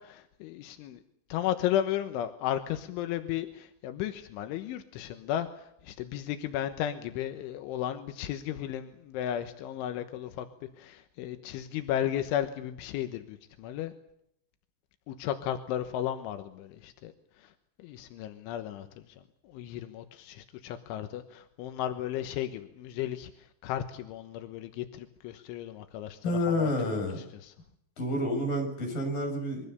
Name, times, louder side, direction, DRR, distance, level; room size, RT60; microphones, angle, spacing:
voice 1, 0.0-1.0 1.3-10.5 10.8-13.9 15.1-17.1 17.4-17.5 17.8-19.2 19.5-23.3 23.6-26.7 27.0-27.1 27.4-27.5, left 11 dB, 90° left, 8 dB, 3.6 m, -34 dB
voice 2, 26.2-27.2 28.0-29.6, left 1 dB, 50° left, 2 dB, 8.1 m, -29 dB
28.0 x 23.0 x 6.8 m, 0.75 s
omnidirectional pair, 5.3 m